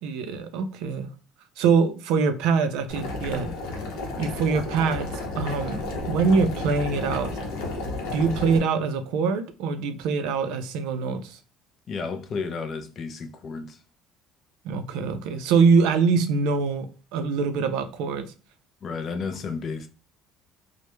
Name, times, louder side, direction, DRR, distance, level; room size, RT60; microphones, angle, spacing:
voice 1, 0.0-1.1 1.6-3.5 4.2-5.1 5.4-7.3 8.1-11.4 14.6-18.3, right 5 dB, 70° right, 0.4 m, -24 dB
Boiling, 2.9-8.6, left 2 dB, 75° left, 0.6 m, -32 dB
voice 2, 11.9-13.8 18.8-19.9, left 4 dB, 30° left, 0.3 m, -32 dB
2.2 x 2.0 x 2.9 m
cardioid pair, 180°, 0 cm